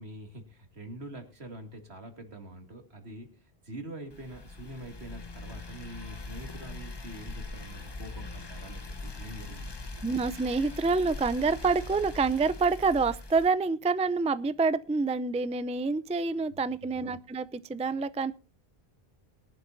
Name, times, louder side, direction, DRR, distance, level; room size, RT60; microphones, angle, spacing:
voice 1, 0.0-10.1 16.5-17.2, right 1 dB, 85° right, 5 dB, 2.7 m, -45 dB
sound 1, 4.1-13.5, left 2 dB, 25° left, 0.9 m, -42 dB
voice 2, 10.0-18.3, right 4 dB, 10° right, 14 dB, 0.3 m, -27 dB
22.0 x 11.5 x 2.7 m, 0.31 s
omnidirectional pair, 1.0 m